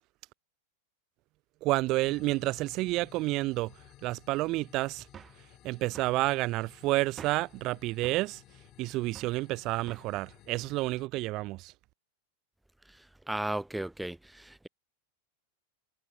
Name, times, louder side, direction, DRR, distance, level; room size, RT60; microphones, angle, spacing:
voice 1, 1.6-3.7 4.0-5.1 5.6-8.4 8.8-11.7, right 20 dB, 40° right, 2.2 m, -30 dB
sound 1, 2.0-11.1, left 15 dB, 35° left, 5.8 m, -56 dB
sound 2, 5.1-5.5 5.9-6.2 7.2-7.6 8.0-8.3 9.1-9.4 9.9-10.2, right 8 dB, 25° right, 5.9 m, -49 dB
voice 2, 13.3-14.7, right 1 dB, 5° right, 2.0 m, -35 dB
figure-of-eight pair, 90°, 0 cm